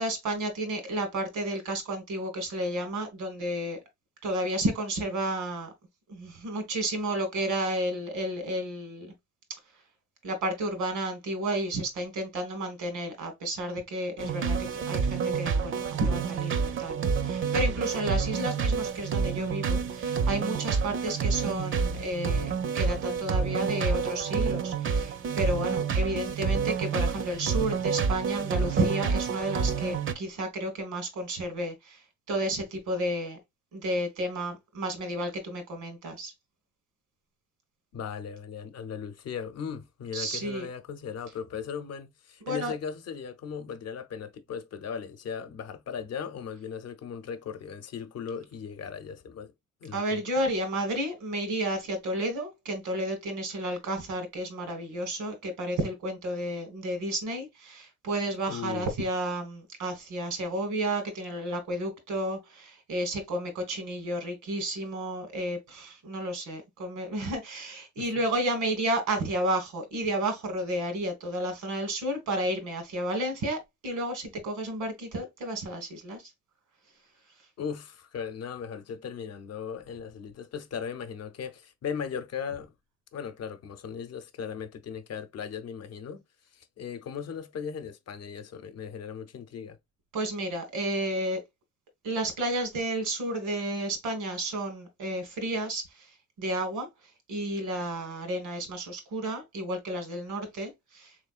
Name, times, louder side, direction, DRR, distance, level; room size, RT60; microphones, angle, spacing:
voice 1, 0.0-3.8 4.2-5.7 6.1-9.1 10.2-32.0 32.3-33.4 33.7-36.3 40.1-40.7 42.4-42.7 49.9-76.3 90.1-91.4 92.0-96.1 96.4-96.9 97.3-101.1, right 1 dB, 85° right, 1.5 m, -32 dB
sound 1, 14.2-30.1, right 6 dB, 45° right, 0.5 m, -28 dB
voice 2, 37.9-49.5 49.8-50.2 58.5-58.9 68.0-68.1 77.6-82.7 83.1-86.2 86.5-89.8, left 7 dB, 55° left, 0.7 m, -37 dB
3.5 x 3.2 x 2.4 m
cardioid pair, 90°, 30 cm